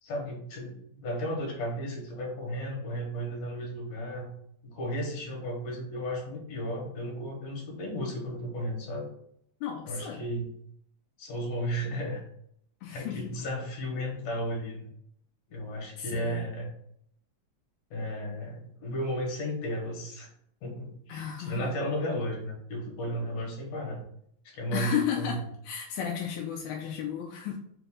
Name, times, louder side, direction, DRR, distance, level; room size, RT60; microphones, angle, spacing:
voice 1, 0.0-4.3 4.6-9.1 9.9-10.5 11.2-12.2 12.9-14.9 15.5-16.7 17.9-20.3 20.6-24.0 24.5-25.4, equal, 65° left, -1 dB, 2.2 m, -34 dB
voice 2, 9.6-10.2 12.8-13.3 16.0-16.5 21.1-21.7 24.7-27.6, left 9 dB, 80° left, 1 dB, 1.7 m, -33 dB
4.8 x 2.6 x 3.6 m, 0.69 s
omnidirectional pair, 3.7 m